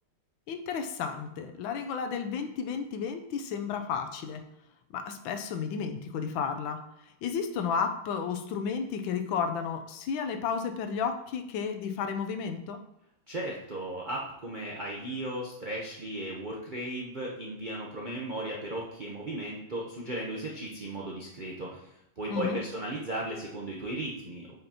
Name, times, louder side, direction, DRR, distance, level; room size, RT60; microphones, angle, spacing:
voice 1, 0.5-4.4 4.9-6.8 7.2-12.8 22.3-22.6, left 6 dB, 75° left, 6 dB, 1.3 m, -32 dB
voice 2, 13.3-21.9 22.2-24.5, right 1 dB, 65° right, -3 dB, 0.4 m, -36 dB
7.9 x 5.2 x 2.9 m, 0.83 s
omnidirectional pair, 2.3 m